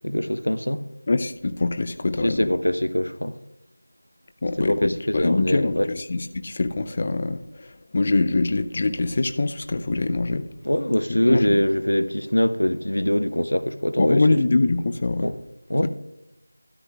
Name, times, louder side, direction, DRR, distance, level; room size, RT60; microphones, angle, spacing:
voice 1, 0.0-0.8 2.2-3.4 4.6-5.9 10.6-14.3 15.2-15.4 15.7-15.9, left 1 dB, 85° left, 0.6 m, -23 dB
voice 2, 1.1-2.5 4.4-7.4 7.9-10.5 11.2-11.5 14.0-15.3 15.8-15.9, left 3 dB, 35° left, 0.4 m, -23 dB
13.0 x 10.0 x 2.4 m
figure-of-eight pair, 170°, 0 cm